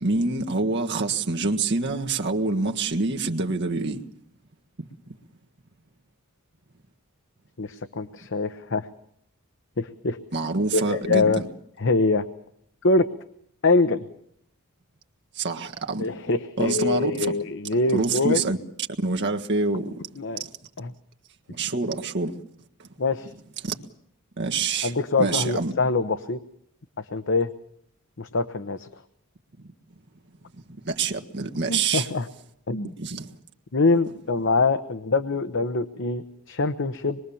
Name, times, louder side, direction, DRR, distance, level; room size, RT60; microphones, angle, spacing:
voice 1, 0.0-4.0 4.8-4.9 10.3-11.3 15.3-16.1 16.6-17.3 17.9-18.6 19.0-19.9 21.5-22.4 22.8-22.9 23.6-23.8 24.4-24.9 25.2-25.7 30.8-32.1 33.0-33.3, right 3 dB, 55° right, 1.6 m, -26 dB
voice 2, 7.6-8.9 9.8-10.2 10.7-11.4 11.8-12.3 12.8-13.1 13.6-14.0 16.0-18.4 19.8-20.4 20.8-20.9 23.0-23.3 24.8-26.4 27.0-27.5 28.2-28.9 31.7-32.3 32.7-32.9 33.7-37.2, left 3 dB, 60° left, 0.9 m, -24 dB
25.5 x 22.0 x 7.1 m
head